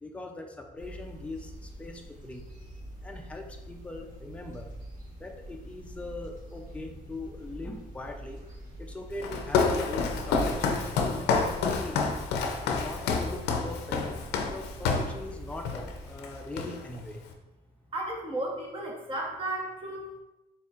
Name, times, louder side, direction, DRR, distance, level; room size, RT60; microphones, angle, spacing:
voice 1, 0.0-2.4 3.0-4.7 5.2-8.4 8.8-12.0 12.6-14.0 14.5-17.2, left 2 dB, 5° left, 3 dB, 0.5 m, -41 dB
sound 1, 0.8-16.1, right 1 dB, 50° right, 1.4 m, -45 dB
Walk footsteps, 9.2-15.2 15.6-15.9 16.2-17.0, left 4 dB, 80° left, 0.5 m, -28 dB
voice 2, 17.9-20.2, right 1 dB, 30° right, 0 dB, 1.0 m, -34 dB
4.2 x 3.7 x 2.4 m, 0.98 s
cardioid pair, 110°, 17 cm